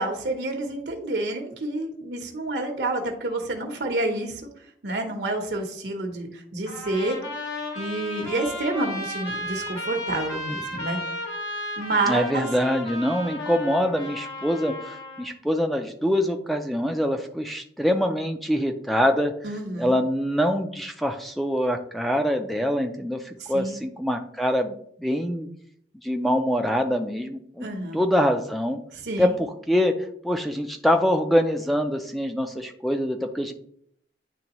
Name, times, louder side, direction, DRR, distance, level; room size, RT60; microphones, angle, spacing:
voice 1, 0.0-4.5 4.8-7.2 7.8-11.0 11.8-12.5 19.4-20.0 23.4-23.8 27.6-28.0 28.9-29.4, right 2 dB, 75° right, 3 dB, 0.9 m, -28 dB
Trumpet, 6.7-15.3, left 1 dB, 85° left, 1.8 m, -34 dB
voice 2, 12.1-19.3 19.8-25.5 26.0-27.7 27.9-28.8 29.2-29.9 30.2-33.5, equal, ahead, 4 dB, 0.4 m, -24 dB
10.0 x 3.5 x 3.0 m, 0.66 s
head